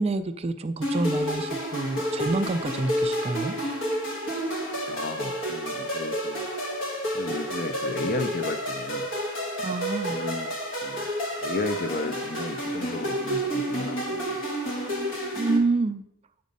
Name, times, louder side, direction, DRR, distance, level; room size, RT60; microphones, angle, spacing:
voice 1, 0.0-3.5 9.6-10.2 15.4-16.0, right 3 dB, 30° right, 11 dB, 0.4 m, -27 dB
sound 1, 0.8-15.6, equal, 65° left, 1.5 m, -30 dB
voice 2, 4.9-6.5 7.1-9.0 10.1-11.1 11.4-14.4, left 2 dB, 50° left, 8 dB, 0.6 m, -33 dB
8.1 x 5.1 x 5.4 m, 0.79 s
head